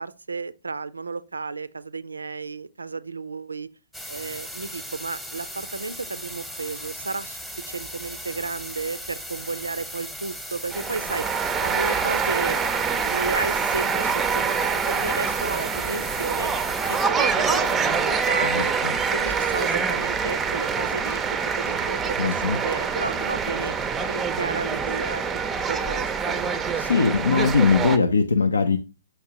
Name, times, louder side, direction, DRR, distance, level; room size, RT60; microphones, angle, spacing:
voice 1, 0.0-3.7 4.1-7.4 7.7-11.3 11.6-16.5 16.9-18.8 19.1-21.2 21.6-23.7 24.1-25.4 25.7-26.4, right 4 dB, 75° right, 0.4 m, -32 dB
sound 1, 3.9-17.1, equal, 5° left, 0.9 m, -38 dB
sound 2, 10.7-28.0, right 6 dB, 15° right, 0.5 m, -25 dB
voice 2, 18.4-18.9 22.2-22.6 26.8-28.8, left 4 dB, 70° left, 0.5 m, -21 dB
6.4 x 5.7 x 2.8 m
figure-of-eight pair, 120°, 0 cm